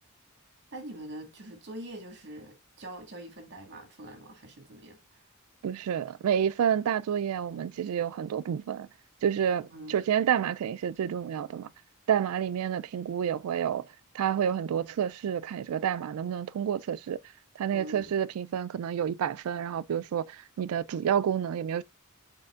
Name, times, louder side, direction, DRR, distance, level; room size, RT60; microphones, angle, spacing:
voice 1, 0.7-5.2 9.7-10.0 17.7-18.1, right 1 dB, 55° right, 1.6 m, -44 dB
voice 2, 5.6-8.9 9.2-11.7 12.1-13.9 14.1-17.2 17.6-21.8, right 8 dB, 75° right, 0.3 m, -29 dB
5.2 x 4.1 x 2.4 m
head